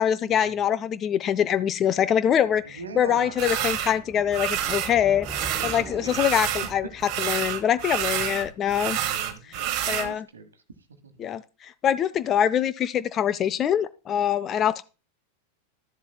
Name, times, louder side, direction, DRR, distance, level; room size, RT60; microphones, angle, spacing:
voice 1, 0.0-6.9 7.2-9.0 9.9-10.3 11.2-14.8, left 9 dB, 30° left, 0.4 m, -24 dB
sound 1, 1.6-9.0, equal, ahead, 1.2 m, -45 dB
voice 2, 2.6-3.5 5.4-6.4 7.1-7.2 8.1-8.5 9.0-10.6 11.0-11.3, right 4 dB, 70° right, 1.2 m, -41 dB
sound 2, 3.4-3.9 4.3-4.9 5.2-6.7 7.0-10.1, right 11 dB, 40° right, 0.9 m, -28 dB
12.5 x 7.3 x 2.3 m
figure-of-eight pair, 90°, 0 cm